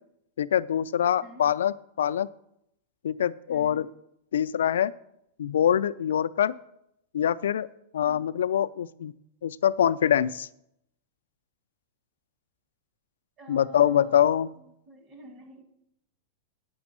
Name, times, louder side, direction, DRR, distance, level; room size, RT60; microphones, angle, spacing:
voice 1, 0.4-2.3 3.0-3.9 4.3-4.9 5.4-6.5 7.1-7.7 7.9-9.1 9.4-10.5 13.5-14.5, left 9 dB, 90° left, 14 dB, 0.4 m, -24 dB
voice 2, 3.5-3.9 8.0-8.3 13.4-15.6, right 1 dB, 30° right, 4 dB, 2.0 m, -49 dB
8.6 x 6.1 x 7.3 m, 0.77 s
supercardioid pair, 140°, 0 cm